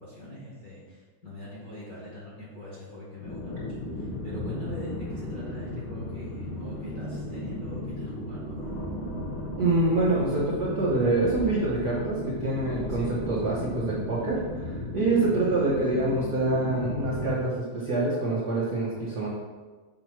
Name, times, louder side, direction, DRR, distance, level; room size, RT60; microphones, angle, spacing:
voice 1, 0.0-8.7 13.0-13.1, left 1 dB, 40° left, -6 dB, 1.4 m, -43 dB
sound 1, 3.2-17.3, left 1 dB, 75° left, 2.9 m, -35 dB
voice 2, 9.6-19.3, right 2 dB, 80° right, -6 dB, 0.9 m, -26 dB
7.7 x 3.0 x 5.8 m, 1.4 s
omnidirectional pair, 3.6 m